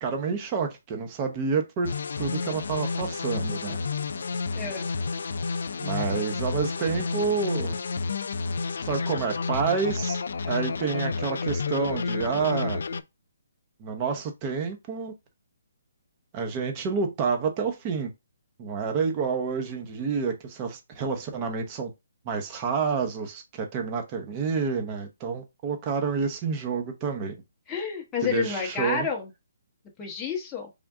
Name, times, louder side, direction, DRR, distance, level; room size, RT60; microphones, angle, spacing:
voice 1, 0.0-1.9 2.2-3.8 5.8-7.8 8.9-10.2 10.5-12.8 13.8-15.1 16.3-18.1 18.6-21.9 22.2-27.4 28.2-29.1, right 5 dB, 25° right, 0.8 m, -29 dB
sound 1, 1.8-13.0, left 4 dB, 70° left, 0.4 m, -30 dB
voice 2, 4.5-4.9 27.7-29.3 30.0-30.7, left 6 dB, 10° left, 0.9 m, -30 dB
3.6 x 2.6 x 3.5 m
hypercardioid pair, 160°, 0 cm